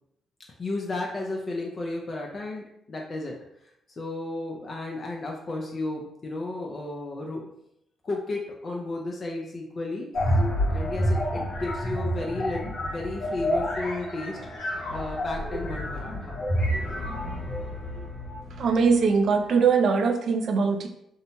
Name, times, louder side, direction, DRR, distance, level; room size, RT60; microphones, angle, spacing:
voice 1, 0.6-3.3 3.6-7.5 8.0-10.1 10.7-14.4 14.9-16.5, left 2 dB, 50° left, 0 dB, 0.5 m, -33 dB
sound 1, 10.1-18.9, equal, 65° left, 0.8 m, -29 dB
voice 2, 18.6-20.9, right 5 dB, 65° right, 5 dB, 0.4 m, -21 dB
2.7 x 2.1 x 2.8 m, 0.78 s
supercardioid pair, 55°, 0 cm